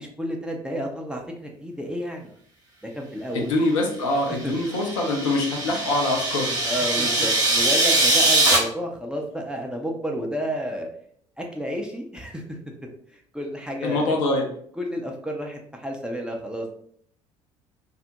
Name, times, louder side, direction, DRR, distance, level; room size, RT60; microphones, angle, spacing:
voice 1, 0.0-2.3 2.9-3.5 4.4-4.5 6.6-10.9 11.4-12.6 13.1-14.2 14.8-16.7, equal, 5° right, 0 dB, 0.4 m, -31 dB
voice 2, 3.3-6.6 7.0-7.2 13.8-14.5, left 2 dB, 70° left, 1 dB, 0.6 m, -24 dB
sound 1, 4.4-8.6, right 2 dB, 20° right, 0.9 m, -22 dB
2.3 x 2.0 x 2.8 m, 0.64 s
figure-of-eight pair, 55°, 17 cm